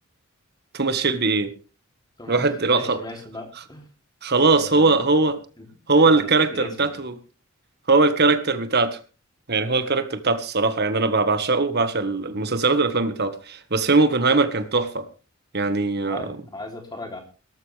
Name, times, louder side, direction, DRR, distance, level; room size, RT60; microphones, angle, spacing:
voice 1, 0.7-1.5 2.3-3.0 4.2-5.4 5.9-7.1 7.9-9.0 9.5-15.0 15.5-16.4, right 3 dB, 50° right, 10 dB, 1.6 m, -20 dB
voice 2, 2.2-3.9 4.4-5.0 5.6-5.7 6.1-6.9 16.1-17.2, left 2 dB, 20° left, 3 dB, 3.4 m, -37 dB
18.0 x 14.0 x 3.5 m, 0.35 s
head